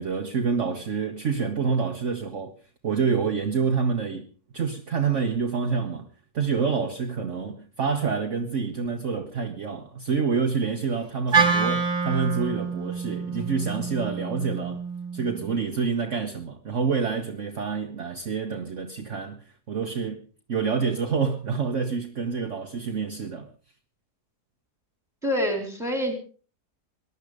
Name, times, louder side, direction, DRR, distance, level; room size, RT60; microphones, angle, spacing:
voice 1, 0.0-2.5 2.8-4.3 4.5-6.1 6.3-14.8 15.1-20.2 20.5-23.5, right 5 dB, 50° right, 1.4 m, -27 dB
Wind instrument woodwind instrument, 11.3-15.6, right 5 dB, 25° right, 2.4 m, -27 dB
voice 2, 25.2-26.2, equal, ahead, 4.2 m, -26 dB
19.5 x 12.0 x 5.1 m
omnidirectional pair, 1.8 m